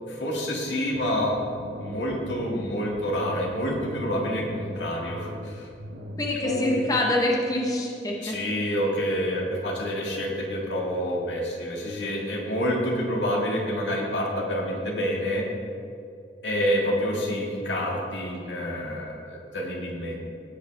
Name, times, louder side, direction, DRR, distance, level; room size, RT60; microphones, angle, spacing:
voice 1, 0.1-1.4 1.8-5.7 6.4-6.6 8.2-15.5 16.4-20.2, equal, 85° left, -1 dB, 1.8 m, -28 dB
sound 1, 0.9-6.6, equal, 85° right, 0.9 m, -39 dB
voice 2, 6.2-8.4, left 1 dB, 20° left, -1 dB, 1.0 m, -25 dB
16.5 x 5.5 x 3.4 m, 2.5 s
head